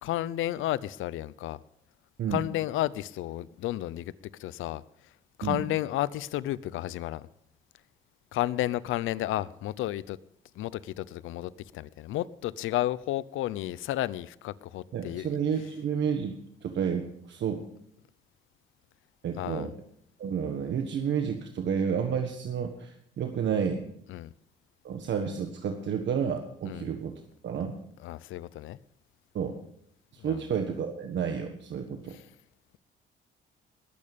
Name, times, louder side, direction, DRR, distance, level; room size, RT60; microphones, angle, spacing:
voice 1, 0.0-1.6 2.3-4.1 4.4-5.1 5.4-7.3 8.3-10.2 10.5-15.4 19.4-19.7 24.1-24.3 26.6-26.9 28.0-28.8 30.2-30.4 32.1-32.2, left 14 dB, 85° left, 0.7 m, -32 dB
voice 2, 14.9-17.6 19.2-19.7 20.2-23.8 24.8-27.7 29.3-29.6 30.1-32.2, right 7 dB, 65° right, 1.5 m, -31 dB
21.0 x 8.7 x 5.2 m
cardioid pair, 90°, 20 cm